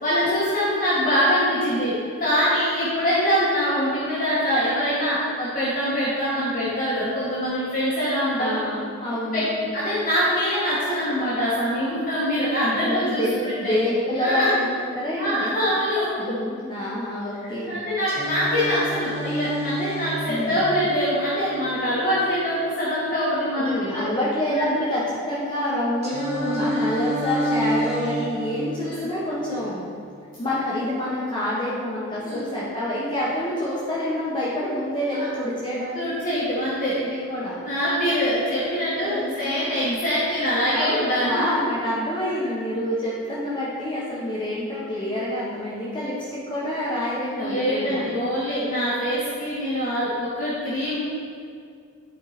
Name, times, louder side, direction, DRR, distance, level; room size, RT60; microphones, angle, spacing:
voice 1, 0.0-8.6 9.3-9.5 9.7-13.8 14.2-14.5 15.2-16.1 17.4-24.0 24.5-24.7 26.4-26.8 28.8-29.1 32.2-32.4 35.1-35.2 36.0-37.0 37.6-41.4 47.4-51.0, equal, 40° left, -10 dB, 1.6 m, -24 dB
voice 2, 8.4-9.7 12.8-15.6 16.2-17.8 20.3-20.6 23.6-25.0 25.3-29.8 30.4-36.0 37.0-37.6 39.0-39.5 40.7-48.1, left 1 dB, 25° left, -8 dB, 1.2 m, -27 dB
Singing, 18.1-22.1 26.0-30.1, right 1 dB, 30° right, 1.4 m, -30 dB
10.5 x 4.7 x 4.3 m, 2.3 s
head